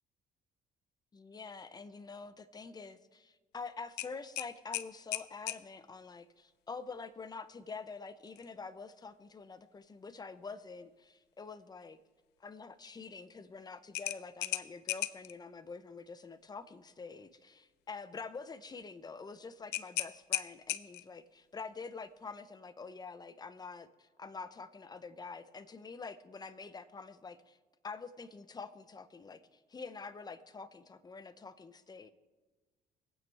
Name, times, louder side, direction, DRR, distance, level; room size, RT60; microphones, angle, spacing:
voice 1, 1.1-12.0 12.4-27.6 27.8-32.1, left 4 dB, 25° left, 12 dB, 0.8 m, -46 dB
sound 1, 4.0-5.6 8.3-8.5 8.9-9.0 13.9-15.3 19.7-21.2, left 15 dB, 85° left, 0.6 m, -37 dB
24.0 x 9.0 x 3.5 m, 1.3 s
cardioid pair, 110°, 17 cm